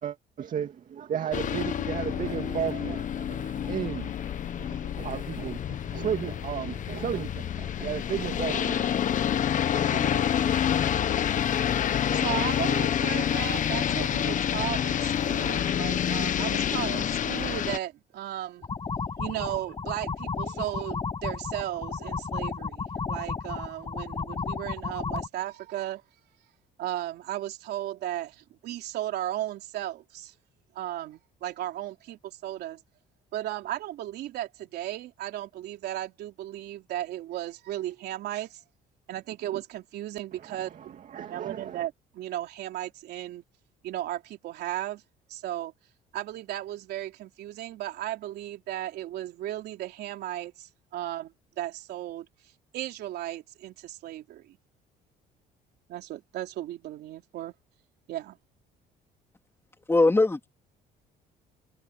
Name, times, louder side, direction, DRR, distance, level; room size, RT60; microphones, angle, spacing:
voice 1, 0.0-11.2 40.8-41.9, right 9 dB, 50° right, 2.4 m, -35 dB
sound 1, 1.3-17.8, left 9 dB, 50° left, 1.4 m, -28 dB
voice 2, 12.0-18.7 19.2-26.0 26.8-30.3 30.7-32.8 33.3-38.6 39.1-40.7 41.2-43.4 43.8-45.0 45.3-45.7 46.1-52.3 52.7-54.6 55.9-57.5 58.1-58.4, right 13 dB, 75° right, 3.3 m, -35 dB
sound 2, 18.6-25.3, left 5 dB, 30° left, 7.8 m, -33 dB
voice 3, 59.9-60.5, left 2 dB, 15° left, 3.6 m, -20 dB
cardioid pair, 110°, 17 cm